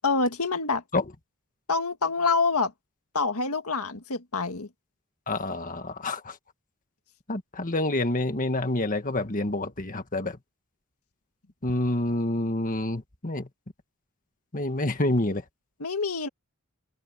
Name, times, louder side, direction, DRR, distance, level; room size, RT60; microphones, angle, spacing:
voice 1, 0.0-0.8 1.7-2.7 3.1-4.7 15.8-16.3, left 4 dB, 90° left, 1.8 m, -26 dB
voice 2, 5.3-6.4 7.3-10.4 11.6-13.5 14.5-15.4, left 2 dB, 40° left, 1.7 m, -28 dB
open air
head